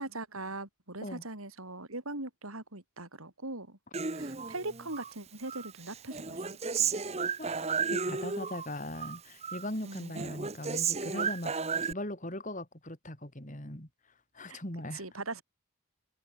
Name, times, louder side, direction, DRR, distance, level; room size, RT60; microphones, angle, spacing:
voice 1, 0.0-3.8 4.1-7.0 9.8-10.3 14.5-14.6 14.9-15.4, right 2 dB, 85° right, 6.4 m, -41 dB
Human voice, 3.9-5.1 5.5-8.7 8.9-9.7 9.9-11.9, right 5 dB, 30° right, 1.1 m, -33 dB
voice 2, 7.9-11.5 11.8-13.9 14.3-15.0, left 1 dB, 35° left, 4.5 m, -39 dB
head